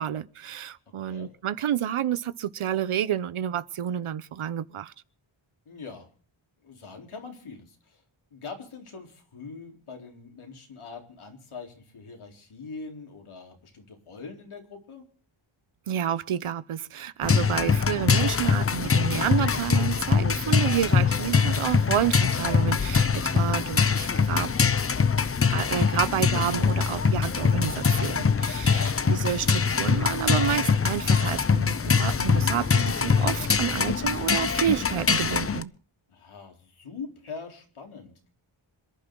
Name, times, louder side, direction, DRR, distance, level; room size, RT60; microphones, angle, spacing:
voice 1, 0.0-4.9 15.9-24.5 25.5-35.7, right 10 dB, 85° right, 0.9 m, -29 dB
voice 2, 1.0-1.3 5.7-6.1 6.6-8.0 8.3-15.0 28.6-29.1 36.1-38.3, left 4 dB, 80° left, 4.0 m, -43 dB
sound 1, 17.2-35.6, left 5 dB, 30° left, 0.6 m, -23 dB
27.0 x 11.0 x 3.9 m
wide cardioid pair, 115°, 49 cm